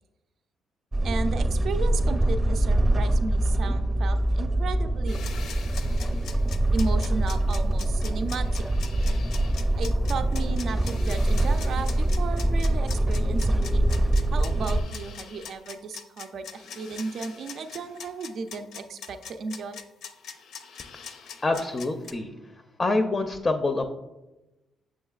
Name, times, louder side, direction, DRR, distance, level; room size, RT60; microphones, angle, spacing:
sound 1, 0.9-14.8, right 1 dB, 20° right, 0.7 m, -24 dB
voice 1, 1.0-5.2 6.7-8.6 9.8-13.8 14.3-19.8, right 4 dB, 60° right, 8 dB, 0.4 m, -34 dB
sound 2, 5.1-22.1, left 6 dB, 75° left, 0.5 m, -42 dB
voice 2, 21.4-22.3 22.8-23.8, left 2 dB, 25° left, 6 dB, 0.4 m, -26 dB
6.4 x 6.3 x 2.3 m, 1.0 s
cardioid pair, 105°, 0 cm